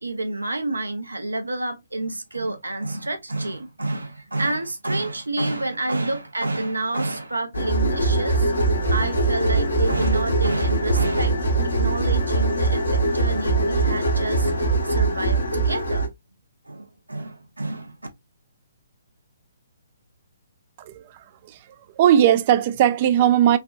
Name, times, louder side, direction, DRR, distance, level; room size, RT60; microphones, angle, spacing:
voice 1, 0.0-8.5 8.9-11.4 11.7-16.0 16.7-18.0, right 2 dB, 75° right, 0.6 m, -29 dB
sound 1, 7.5-16.1, right 2 dB, 70° left, 0.9 m, -22 dB
voice 2, 22.0-23.6, right 10 dB, 35° right, 0.3 m, -18 dB
3.4 x 2.2 x 2.4 m
figure-of-eight pair, 130°, 0 cm